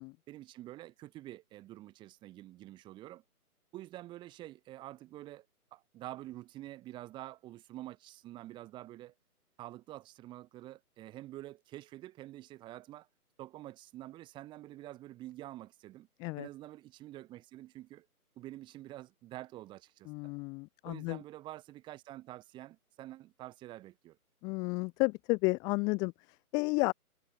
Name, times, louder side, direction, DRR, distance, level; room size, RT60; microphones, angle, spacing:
voice 1, 0.3-3.2 3.7-5.4 5.7-9.1 9.6-13.1 13.4-16.1 16.4-18.1 18.3-20.3 20.8-24.2, right 15 dB, 10° right, 3.4 m, -47 dB
voice 2, 20.1-21.2 24.4-26.9, left 28 dB, 10° left, 1.4 m, -32 dB
hypercardioid pair, 165°, 45 cm